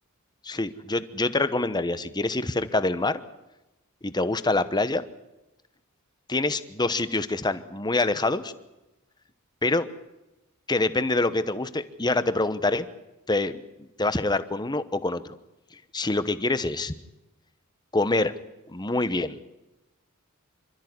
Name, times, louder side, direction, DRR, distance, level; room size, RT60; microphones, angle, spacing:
voice 1, 0.4-3.2 4.0-5.0 6.3-8.5 9.6-9.9 10.7-12.9 13.3-13.6 14.0-15.2 15.9-17.0 17.9-18.3 18.7-19.4, left 2 dB, 20° left, 13 dB, 1.0 m, -25 dB
26.5 x 13.5 x 9.6 m, 0.98 s
head